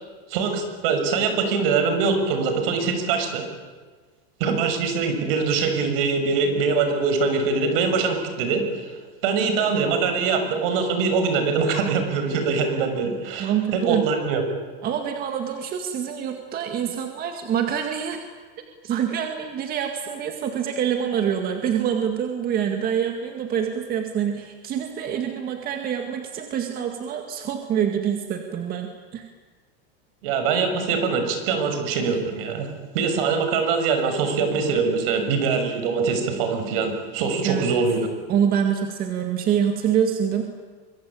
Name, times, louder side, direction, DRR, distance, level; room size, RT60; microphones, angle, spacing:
voice 1, 0.3-3.4 4.4-8.8 9.2-14.4 30.2-32.7 32.9-38.1, right 5 dB, 65° right, 6 dB, 6.6 m, -23 dB
voice 2, 13.4-14.1 14.8-18.2 18.8-29.3 37.4-37.7 38.3-40.4, right 8 dB, 30° right, 5 dB, 2.1 m, -25 dB
25.0 x 23.5 x 9.0 m, 1.4 s
supercardioid pair, 160°, 30 cm